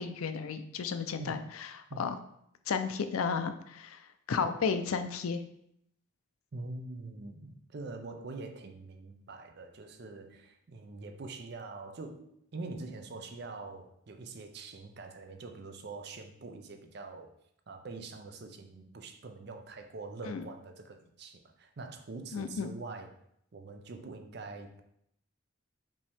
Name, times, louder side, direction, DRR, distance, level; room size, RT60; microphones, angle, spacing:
voice 1, 0.0-1.4 2.0-2.2 2.7-4.0 4.3-5.4 20.3-20.5 22.3-22.7, left 5 dB, 90° left, 9 dB, 0.4 m, -32 dB
voice 2, 6.5-17.3 17.7-23.1 23.5-24.8, right 3 dB, 50° right, 6 dB, 0.5 m, -44 dB
5.3 x 2.8 x 3.4 m, 0.72 s
head